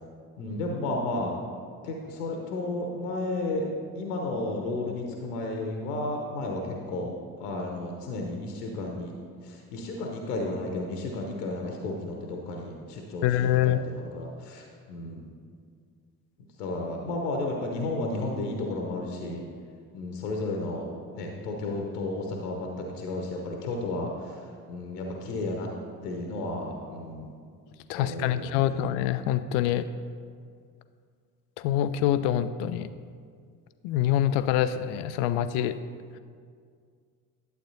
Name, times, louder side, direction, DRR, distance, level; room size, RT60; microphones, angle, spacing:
voice 1, 0.4-1.4 1.8-3.6 3.9-7.1 7.4-9.1 9.4-15.2 16.6-19.4 19.9-25.7 26.0-27.3 27.9-28.9, left 2 dB, 70° left, 1 dB, 0.9 m, -33 dB
voice 2, 13.2-13.8 27.9-29.8 31.6-32.9 33.8-35.7, left 11 dB, 55° left, 12 dB, 0.5 m, -25 dB
11.5 x 8.0 x 2.7 m, 2.1 s
figure-of-eight pair, 50°, 48 cm